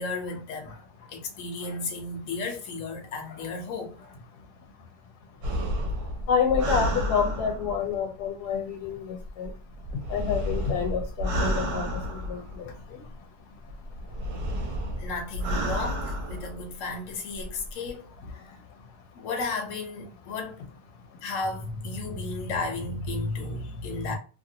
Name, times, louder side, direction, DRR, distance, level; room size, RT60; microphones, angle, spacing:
voice 1, 0.0-4.2 15.0-18.1 18.3-18.5 19.1-20.6 21.2-24.1, left 3 dB, 60° left, 1.1 m, -34 dB
sound 1, 5.4-7.9 9.2-12.8 13.7-16.6 17.3-17.7, equal, 75° right, 1.2 m, -31 dB
voice 2, 6.3-9.5 10.1-11.9 12.3-12.4, left 6 dB, 80° left, 1.1 m, -27 dB
2.9 x 2.5 x 2.7 m
omnidirectional pair, 1.7 m